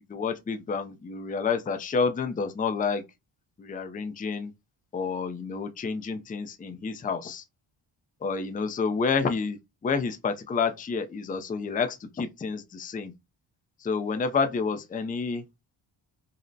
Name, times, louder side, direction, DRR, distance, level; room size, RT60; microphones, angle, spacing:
voice 1, 0.1-3.0 3.6-4.5 4.9-7.4 8.2-13.1 13.8-15.4, left 5 dB, 20° left, 0.4 m, -29 dB
5.2 x 2.0 x 2.7 m
cardioid pair, 75°, 47 cm